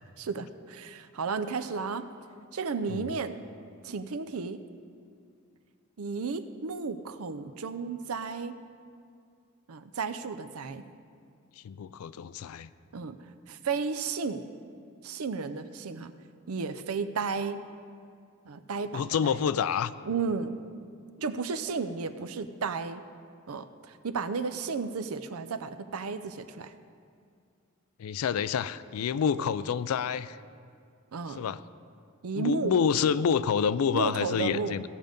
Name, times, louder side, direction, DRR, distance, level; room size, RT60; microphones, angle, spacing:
voice 1, 0.2-2.1 2.5-3.4 3.8-4.6 6.0-8.6 9.7-10.9 12.9-13.2 13.5-14.4 15.0-16.1 16.5-17.6 18.5-19.4 20.0-20.6 21.2-23.0 23.5-26.7 31.1-31.4 32.2-32.8 33.9-34.8, right 5 dB, 90° right, 11 dB, 0.6 m, -33 dB
voice 2, 11.6-12.7 18.9-19.9 28.0-30.4 31.4-31.6 32.4-34.8, left 7 dB, 85° left, 16 dB, 0.4 m, -28 dB
16.0 x 6.6 x 5.2 m, 2.3 s
head